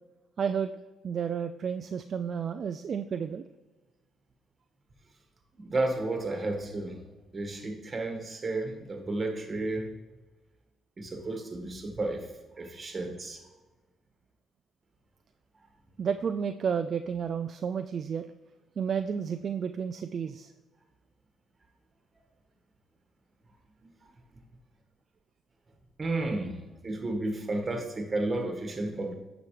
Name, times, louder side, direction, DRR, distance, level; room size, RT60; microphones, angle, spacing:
voice 1, 0.4-0.7 1.0-3.5 16.0-18.3 18.8-20.5, right 7 dB, 55° right, 9 dB, 0.3 m, -31 dB
voice 2, 5.5-7.0 7.3-9.9 11.0-12.3 12.5-13.4 23.8-23.9 26.0-29.1, right 2 dB, 30° right, 4 dB, 1.7 m, -32 dB
9.5 x 6.1 x 3.3 m, 1.2 s
cardioid pair, 90°, 0 cm